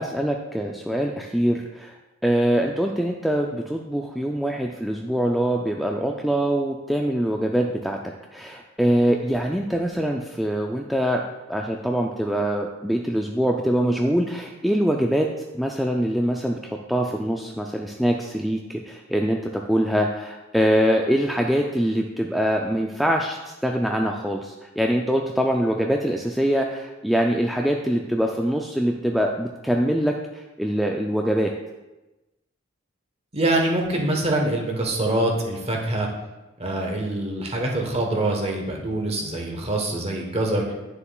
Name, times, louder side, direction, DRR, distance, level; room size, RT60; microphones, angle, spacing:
voice 1, 0.0-2.0 2.2-8.0 8.3-31.5, equal, ahead, 1 dB, 0.3 m, -24 dB
voice 2, 33.3-36.1 36.6-40.7, right 1 dB, 30° right, 1 dB, 1.1 m, -24 dB
9.3 x 6.7 x 2.3 m, 1.1 s
head